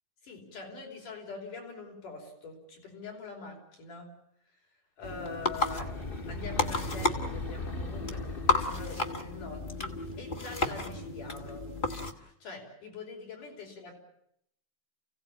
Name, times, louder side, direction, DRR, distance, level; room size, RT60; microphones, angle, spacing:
voice 1, 0.2-4.1 5.0-11.7 12.1-13.9, left 3 dB, 70° left, 1 dB, 6.5 m, -44 dB
sound 1, 5.0-12.1, left 3 dB, 40° left, 0.7 m, -33 dB
sound 2, 5.4-9.2, left 2 dB, 20° left, 1.6 m, -39 dB
30.0 x 17.0 x 8.8 m, 0.77 s
omnidirectional pair, 3.8 m